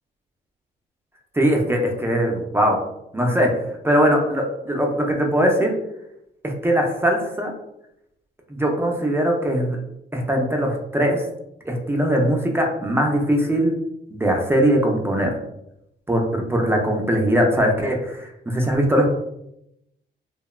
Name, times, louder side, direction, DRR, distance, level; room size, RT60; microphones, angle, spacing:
voice 1, 1.3-2.8 3.1-3.5 3.8-5.7 6.4-7.5 8.5-9.8 10.1-11.2 11.7-13.7 14.1-15.3 16.1-19.1, equal, 10° right, 1 dB, 0.3 m, -20 dB
2.8 x 2.0 x 2.2 m, 0.83 s
cardioid pair, 90°, 20 cm